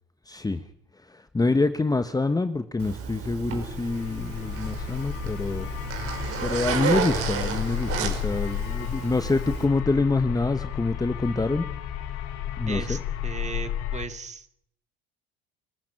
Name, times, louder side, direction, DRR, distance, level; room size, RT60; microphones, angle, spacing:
voice 1, 0.3-0.6 1.0-5.7 6.4-11.7 12.6-13.0, left 3 dB, 10° left, 10 dB, 1.4 m, -26 dB
Zipper (clothing), 2.8-9.7, right 7 dB, 50° right, 5.3 m, -32 dB
sound 1, 3.4-14.0, left 10 dB, 60° left, 2.3 m, -33 dB
voice 2, 12.7-14.5, right 5 dB, 25° right, 9 dB, 2.4 m, -37 dB
28.0 x 12.0 x 9.0 m, 0.71 s
hypercardioid pair, 70°, 29 cm